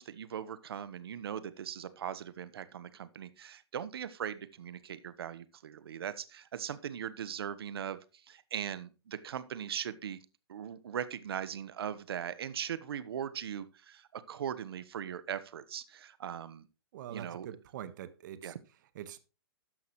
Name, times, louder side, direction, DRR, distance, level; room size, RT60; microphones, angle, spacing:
voice 1, 0.0-8.0 8.3-10.2 10.5-16.7 17.1-17.6 18.4-18.6, right 9 dB, 70° right, 1.3 m, -39 dB
voice 2, 16.9-18.5 18.9-19.2, right 11 dB, 50° right, 1.5 m, -44 dB
13.5 x 9.6 x 3.2 m
hypercardioid pair, 150°, 13 cm